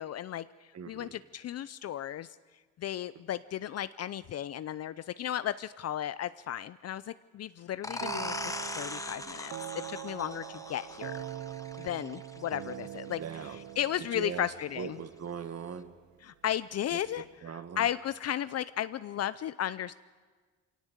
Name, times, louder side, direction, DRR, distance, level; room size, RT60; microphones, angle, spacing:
voice 1, 0.0-2.4 2.8-8.4 8.8-11.2 11.8-15.0 16.2-17.3 17.8-19.9, left 11 dB, 55° left, 15 dB, 0.6 m, -35 dB
voice 2, 0.7-1.2 13.2-13.6 14.1-14.5 14.7-15.9 16.9-17.0 17.4-17.9, right 7 dB, 55° right, 10 dB, 1.7 m, -40 dB
sound 1, 7.8-13.2, left 2 dB, 10° left, 1.2 m, -40 dB
sound 2, 8.0-15.7, right 13 dB, 75° right, 0.7 m, -43 dB
23.5 x 17.5 x 8.1 m, 1.5 s
cardioid pair, 90°, 30 cm